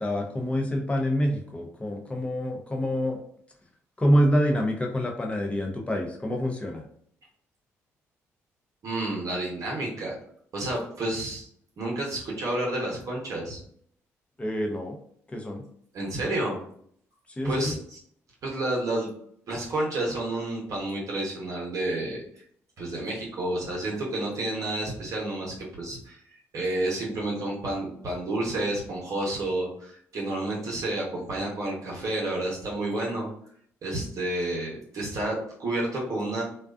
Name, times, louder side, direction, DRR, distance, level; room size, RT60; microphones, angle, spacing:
voice 1, 0.0-3.2 4.0-6.9 14.4-15.0 15.3-15.6 17.4-17.8, equal, 20° left, 1 dB, 0.7 m, -26 dB
voice 2, 8.8-10.2 10.5-11.5 11.8-13.6 15.9-16.6 17.4-18.0 18.4-19.1 19.5-22.2 22.8-26.2 26.5-33.3 33.8-36.4, right 1 dB, 55° right, -3 dB, 0.9 m, -30 dB
2.4 x 2.3 x 2.4 m, 0.64 s
supercardioid pair, 55°, 7 cm